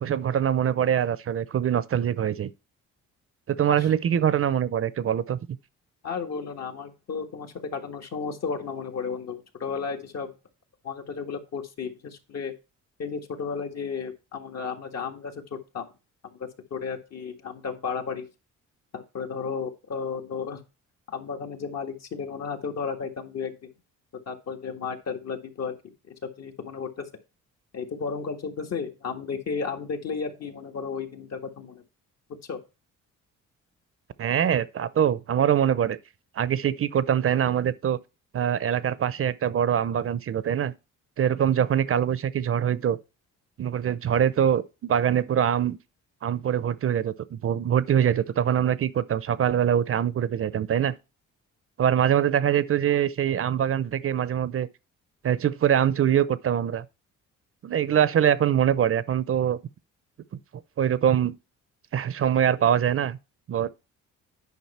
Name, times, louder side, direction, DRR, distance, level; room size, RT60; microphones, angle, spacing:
voice 1, 0.0-2.5 3.5-5.4 34.2-36.0 36.4-38.0 38.3-40.7 41.2-43.0 43.6-45.8 46.2-50.9 51.8-54.7 55.2-56.8 57.6-59.6 60.8-61.3 61.9-63.2 63.5-63.7, right 9 dB, 45° right, 0.6 m, -23 dB
voice 2, 6.0-10.3 10.8-12.5 13.0-15.9 16.2-18.3 18.9-20.6 21.1-23.7 24.3-27.1 27.7-31.8 32.3-32.6, left 5 dB, 60° left, 1.8 m, -33 dB
9.5 x 5.4 x 4.2 m
cardioid pair, 90°, 30 cm